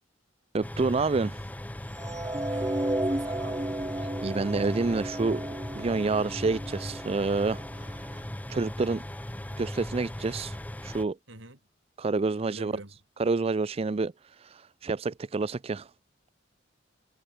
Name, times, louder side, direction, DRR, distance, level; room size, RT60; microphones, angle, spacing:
voice 1, 0.5-1.4 4.2-5.4 5.7-8.1 8.5-9.0 9.6-10.6 10.8-11.2 12.0-12.7 13.2-14.1 14.4-15.9, right 3 dB, 30° right, 0.4 m, -28 dB
sound 1, 0.6-11.0, left 1 dB, 10° left, 0.7 m, -38 dB
sound 2, 2.0-8.2, right 1 dB, 15° right, 1.1 m, -34 dB
voice 2, 2.5-3.8 11.3-11.6 12.4-13.0, right 2 dB, 80° right, 4.6 m, -47 dB
head